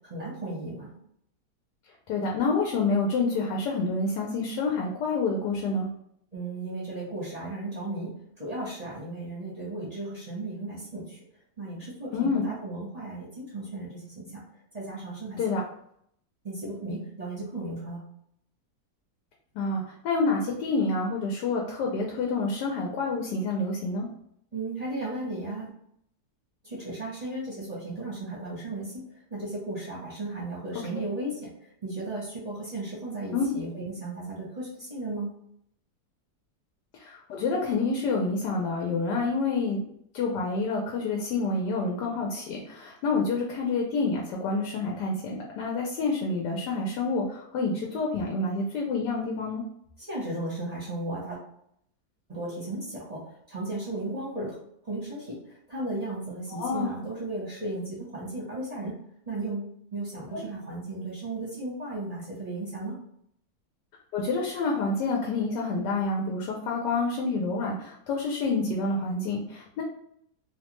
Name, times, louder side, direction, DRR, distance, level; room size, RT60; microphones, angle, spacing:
voice 1, 0.1-0.9 6.3-11.2 11.6-14.3 14.7-15.4 16.4-18.0 24.5-25.7 26.6-29.0 29.3-35.3 50.0-51.4 52.3-54.5 54.8-58.9 59.3-63.0, right 2 dB, 35° right, -6 dB, 0.6 m, -35 dB
voice 2, 2.1-5.9 12.1-12.4 15.4-15.6 19.5-24.1 33.3-33.5 37.0-39.8 40.1-49.6 56.5-56.9 60.3-60.4 64.1-69.8, left 3 dB, 90° left, -1 dB, 1.2 m, -28 dB
3.1 x 2.1 x 2.9 m, 0.70 s
omnidirectional pair, 1.8 m